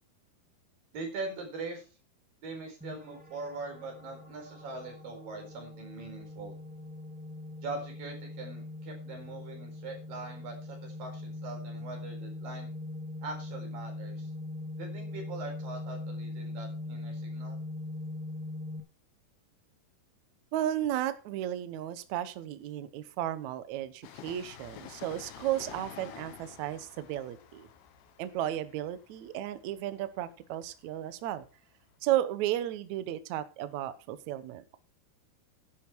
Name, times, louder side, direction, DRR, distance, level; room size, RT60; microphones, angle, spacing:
voice 1, 0.9-1.9 2.4-6.6 7.6-12.7 13.2-14.3 14.8-17.6, right 3 dB, 60° right, 2 dB, 5.9 m, -42 dB
sound 1, 2.8-18.8, left 2 dB, 5° right, 0.7 m, -41 dB
voice 2, 20.5-27.7 28.2-31.4 32.0-34.8, right 12 dB, 80° right, 12 dB, 1.6 m, -34 dB
Train, 24.0-31.5 31.7-31.8, left 9 dB, 80° left, 3.4 m, -50 dB
11.0 x 11.0 x 4.5 m, 0.34 s
omnidirectional pair, 4.8 m